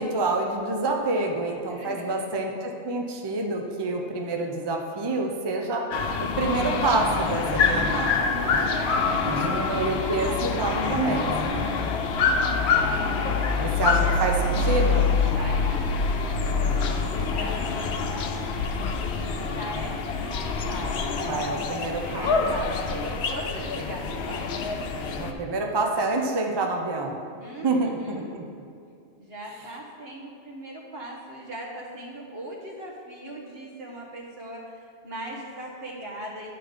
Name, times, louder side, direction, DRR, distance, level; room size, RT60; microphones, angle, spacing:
voice 1, 0.0-5.8 6.4-8.7 9.2-11.7 13.5-15.2 21.3-22.7 25.2-27.2 27.6-28.4, right 3 dB, 30° right, 2 dB, 0.5 m, -27 dB
voice 2, 1.7-2.3 8.8-11.5 13.5-13.9 15.3-18.5 19.1-24.5 27.4-28.4 29.2-36.5, right 1 dB, 70° right, -2 dB, 1.4 m, -39 dB
sound 1, 5.9-25.3, left 4 dB, 85° left, 0.9 m, -26 dB
9.4 x 3.8 x 5.0 m, 2.3 s
omnidirectional pair, 1.1 m